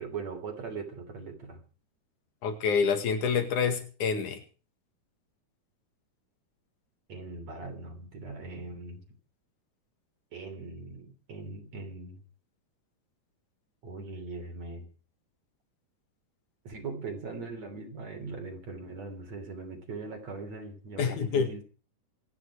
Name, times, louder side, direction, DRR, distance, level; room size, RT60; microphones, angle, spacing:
voice 1, 0.0-1.6 7.1-9.0 10.3-12.2 13.8-14.9 16.6-21.6, right 4 dB, 55° right, 3 dB, 4.4 m, -40 dB
voice 2, 2.4-4.4 21.0-21.5, left 6 dB, 70° left, 7 dB, 3.4 m, -27 dB
26.5 x 9.5 x 4.8 m, 0.38 s
omnidirectional pair, 3.7 m